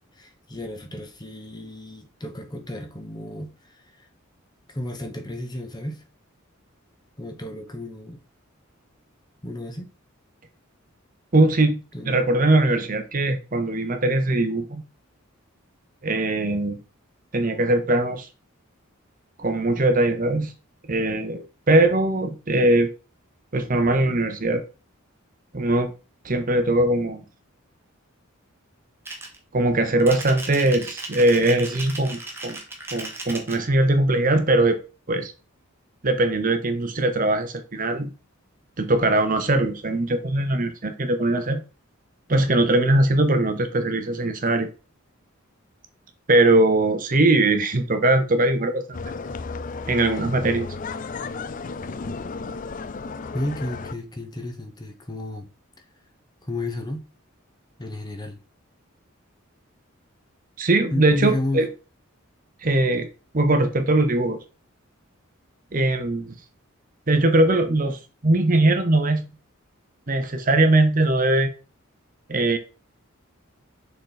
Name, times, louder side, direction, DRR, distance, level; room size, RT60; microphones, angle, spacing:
voice 1, 0.0-4.1 4.7-6.0 7.2-8.2 9.4-9.9 11.9-12.1 53.3-55.5 55.8-55.9 56.4-57.1 57.8-58.4 60.9-61.7, left 1 dB, 20° left, 0.9 m, -32 dB
voice 2, 11.3-14.8 16.0-16.8 17.3-18.3 19.4-20.5 20.9-22.9 23.5-24.6 25.5-25.9 26.2-27.2 29.5-32.6 32.9-34.8 35.1-35.3 36.0-38.1 38.8-41.6 42.3-44.7 46.3-48.8 49.9-50.7 60.6-61.7 62.6-63.1 63.3-64.4 65.7-66.4 67.1-69.3 70.1-71.5 72.3-72.6, right 2 dB, 40° right, 0.8 m, -21 dB
sound 1, 29.1-29.4 30.0-33.6, right 2 dB, 10° right, 1.1 m, -36 dB
sound 2, 48.9-53.9, left 4 dB, 40° left, 0.4 m, -33 dB
6.5 x 4.1 x 4.0 m
head